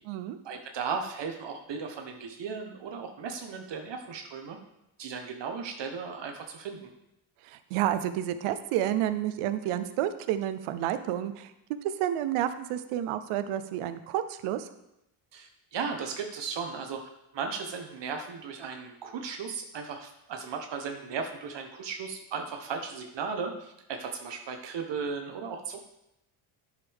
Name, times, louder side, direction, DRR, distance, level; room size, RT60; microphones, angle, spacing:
voice 1, 0.4-4.6 5.0-6.9 15.3-17.0 17.3-25.8, right 5 dB, 55° right, 3 dB, 1.2 m, -36 dB
voice 2, 7.4-11.5 11.8-14.7, right 11 dB, 80° right, 11 dB, 0.8 m, -30 dB
9.6 x 6.7 x 3.6 m, 0.85 s
cardioid pair, 85°, 50 cm